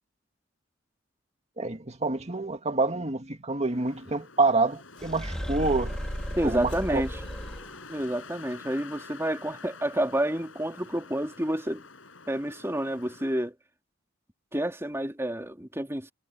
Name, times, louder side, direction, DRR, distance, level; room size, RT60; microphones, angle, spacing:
voice 1, 1.6-6.0 6.4-7.0, right 3 dB, 35° right, 2.1 m, -27 dB
Wind, 3.6-13.5, left 4 dB, 75° left, 7.2 m, -47 dB
sound 1, 5.0-8.0, equal, 5° left, 2.6 m, -35 dB
voice 2, 6.3-7.2 7.9-11.8 12.3-13.5 14.5-16.1, right 1 dB, 15° right, 3.3 m, -29 dB
head